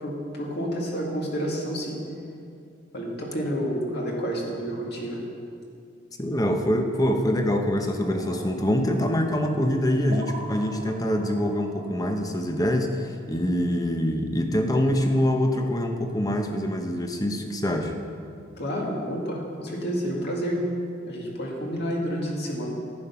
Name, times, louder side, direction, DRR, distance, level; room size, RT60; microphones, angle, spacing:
voice 1, 0.0-2.0 2.9-5.2 18.6-20.6 21.1-22.7, equal, 55° left, -2 dB, 2.2 m, -29 dB
voice 2, 6.2-18.0, equal, 20° left, 4 dB, 0.8 m, -25 dB
sound 1, 8.0-13.4, right 2 dB, 40° right, 1.5 m, -43 dB
11.0 x 9.2 x 5.7 m, 2.4 s
head